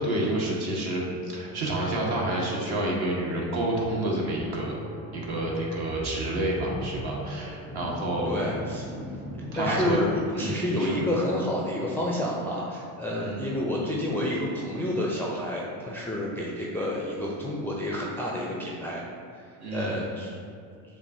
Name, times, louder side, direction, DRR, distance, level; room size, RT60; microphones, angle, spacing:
voice 1, 0.0-4.8 5.1-8.5 9.5-10.0 10.3-11.0 13.2-13.6 19.6-20.0, right 1 dB, 50° right, -3 dB, 1.3 m, -29 dB
sound 1, 4.1-11.1, equal, 15° right, 0.8 m, -39 dB
voice 2, 8.3-8.9 9.5-10.1 10.4-19.0 19.3-20.4, left 1 dB, 5° left, -4 dB, 0.4 m, -29 dB
6.8 x 2.4 x 2.7 m, 2.4 s
hypercardioid pair, 75°, 49 cm